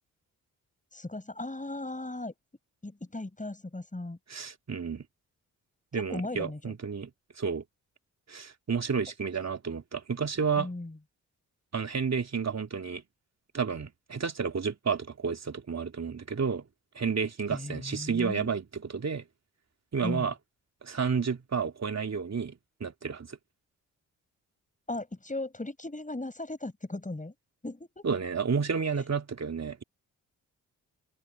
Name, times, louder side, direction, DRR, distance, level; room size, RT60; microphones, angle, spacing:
voice 1, 0.9-2.4 2.8-4.2 5.9-6.8 10.6-11.0 17.5-18.5 20.0-20.3 24.9-27.3 27.6-28.0, left 2 dB, 20° left, 6.8 m, -37 dB
voice 2, 4.3-5.0 5.9-7.1 7.4-7.6 8.3-10.7 11.7-13.0 13.5-16.6 16.9-19.2 19.9-20.3 20.8-22.5 22.8-23.4 28.0-29.8, right 6 dB, 45° right, 2.8 m, -31 dB
open air
hypercardioid pair, 45°, 38 cm